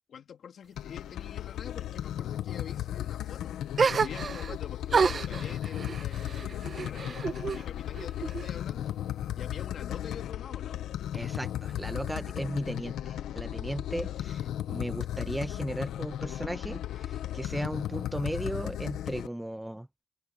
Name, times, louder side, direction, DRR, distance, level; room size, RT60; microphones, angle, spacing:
voice 1, 0.1-3.6 4.0-9.0 9.3-10.8 14.0-14.3, left 8 dB, 70° left, 3.3 m, -46 dB
sound 1, 0.8-19.3, left 11 dB, 85° left, 0.9 m, -35 dB
sound 2, 3.8-4.6 4.9-7.6 7.9-8.8, right 5 dB, 50° right, 1.1 m, -29 dB
voice 2, 11.1-19.9, right 1 dB, 10° right, 1.0 m, -36 dB
cardioid pair, 65°, 0 cm